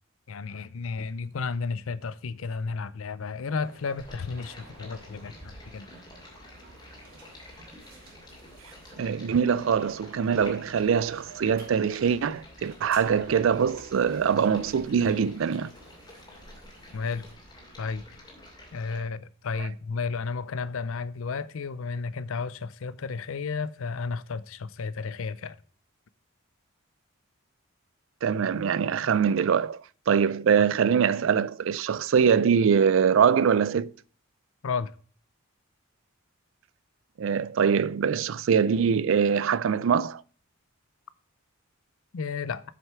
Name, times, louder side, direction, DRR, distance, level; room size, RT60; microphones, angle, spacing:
voice 1, 0.3-5.9 16.9-17.2 17.8-18.0 18.7-25.6 34.6-34.9 42.1-42.6, left 4 dB, 75° left, 0.5 m, -32 dB
sound 1, 3.6-17.3, right 2 dB, 45° right, 3.8 m, -55 dB
Stream, 4.0-19.0, left 1 dB, 20° left, 2.5 m, -49 dB
voice 2, 9.0-15.7 28.2-29.8 30.1-33.9 37.2-40.2, right 7 dB, 65° right, 0.4 m, -23 dB
7.6 x 6.5 x 4.6 m
head